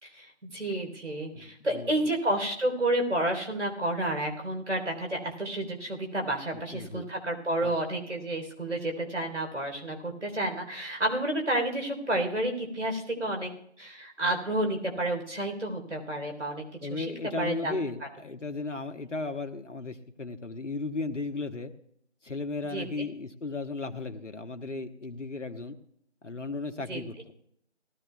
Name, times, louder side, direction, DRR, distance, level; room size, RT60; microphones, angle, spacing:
voice 1, 0.0-13.5 13.8-16.6 16.9-17.1 17.4-17.8 22.7-23.1 26.9-27.0, right 1 dB, 80° right, 2 dB, 3.7 m, -30 dB
voice 2, 1.3-2.1 6.5-7.1 7.6-7.7 16.8-21.7 22.2-25.8 26.2-27.2, left 3 dB, 85° left, 7 dB, 1.2 m, -35 dB
18.5 x 13.5 x 2.3 m, 0.70 s
figure-of-eight pair, 180°, 36 cm